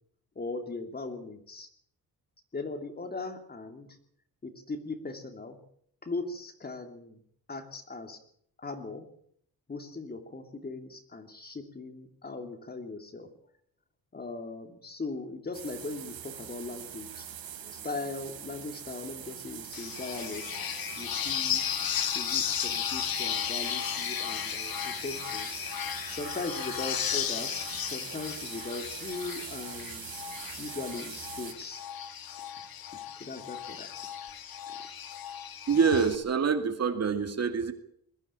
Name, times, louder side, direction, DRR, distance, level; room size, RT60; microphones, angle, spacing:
voice 1, 0.3-1.7 2.5-3.9 4.4-5.6 6.0-7.2 7.5-8.2 8.6-9.1 9.7-13.3 14.1-17.3 17.6-20.6 20.9-21.6 22.1-25.6 26.1-30.1 30.6-31.8 32.9-33.9, left 3 dB, 25° left, 6 dB, 2.9 m, -39 dB
sound 1, 15.5-31.5, right 9 dB, 75° right, 3.3 m, -43 dB
sound 2, 19.7-36.1, left 9 dB, 75° left, 2.3 m, -35 dB
voice 2, 35.7-37.7, right 5 dB, 45° right, 8 dB, 2.2 m, -26 dB
21.5 x 14.5 x 8.8 m, 0.67 s
wide cardioid pair, 145°, 36 cm